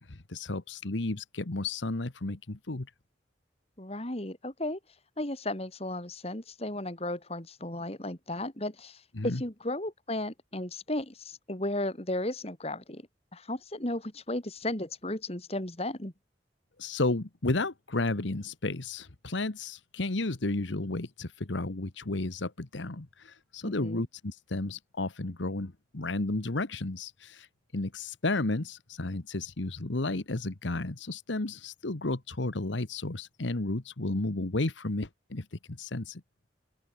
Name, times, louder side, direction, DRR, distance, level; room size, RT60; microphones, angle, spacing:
voice 1, 0.0-2.9 9.1-9.4 16.8-27.5 27.7-36.2, left 2 dB, 85° left, 1.4 m, -32 dB
voice 2, 3.8-4.8 5.2-13.0 13.3-16.1 23.6-24.0, left 1 dB, 35° left, 2.8 m, -35 dB
open air
head